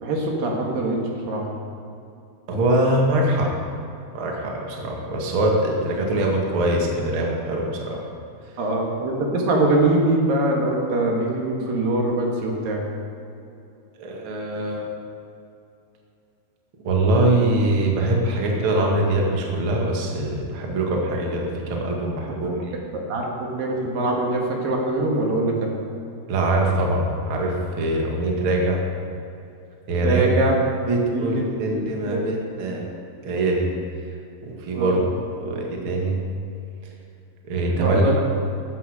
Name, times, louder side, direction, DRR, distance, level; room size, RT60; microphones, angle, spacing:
voice 1, 0.0-1.5 8.6-12.8 23.1-25.7 30.0-30.5 31.1-31.4 32.1-32.2 34.8-35.0 37.7-38.2, right 2 dB, 60° right, -1 dB, 2.8 m, -23 dB
voice 2, 2.5-3.5 4.1-8.0 14.0-14.8 16.8-22.7 26.3-28.8 29.9-30.3 30.9-32.9 33.2-33.7 34.4-35.0 35.3-36.2 37.5-38.2, right 1 dB, 80° right, -1 dB, 1.1 m, -23 dB
15.0 x 13.0 x 5.0 m, 2.6 s
omnidirectional pair, 5.9 m